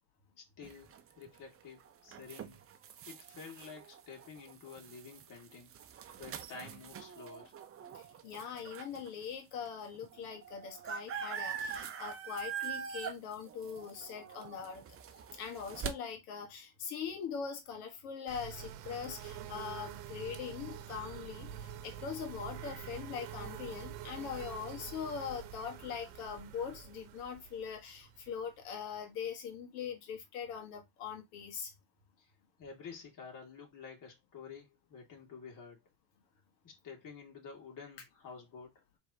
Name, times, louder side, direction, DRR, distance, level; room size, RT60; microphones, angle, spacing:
voice 1, 0.4-2.6 3.1-5.7 6.2-7.5 32.2-32.3 32.6-35.8 36.6-38.7, left 5 dB, 45° left, 2.2 m, -50 dB
sound 1, 0.6-9.1 9.7-9.8 9.9-15.9, right 8 dB, 30° right, 0.7 m, -44 dB
voice 2, 8.2-14.8 15.4-31.7, left 7 dB, 80° left, 1.6 m, -42 dB
sound 2, 18.3-28.9, right 9 dB, 75° right, 0.9 m, -47 dB
4.5 x 3.5 x 2.8 m
supercardioid pair, 95°, 45 cm